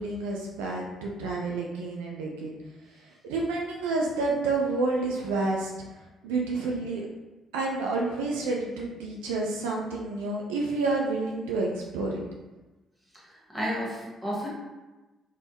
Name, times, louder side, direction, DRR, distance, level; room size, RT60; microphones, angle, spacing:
voice 1, 0.0-2.5 3.3-5.7 6.2-7.1 7.5-11.7 11.9-12.2, right 3 dB, 70° right, -2 dB, 0.3 m, -29 dB
voice 2, 13.1-14.5, equal, ahead, -6 dB, 1.2 m, -33 dB
3.5 x 2.0 x 2.8 m, 1.1 s
figure-of-eight pair, 40°, 0 cm